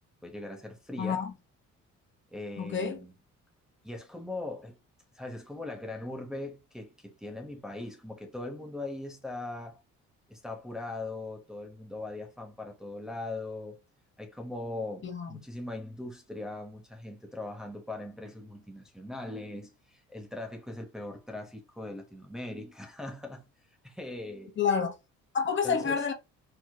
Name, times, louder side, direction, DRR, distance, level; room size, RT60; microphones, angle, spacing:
voice 1, 0.2-1.3 2.3-3.1 3.8-4.8 5.1-9.8 10.3-13.8 14.2-23.5 23.8-24.5 25.6-26.0, left 2 dB, ahead, 0.8 m, -40 dB
voice 2, 1.0-1.3 2.6-3.0 15.0-15.3 24.6-24.9 25.3-26.1, left 6 dB, 40° left, 0.9 m, -28 dB
4.7 x 2.6 x 2.2 m
cardioid pair, 120°, 29 cm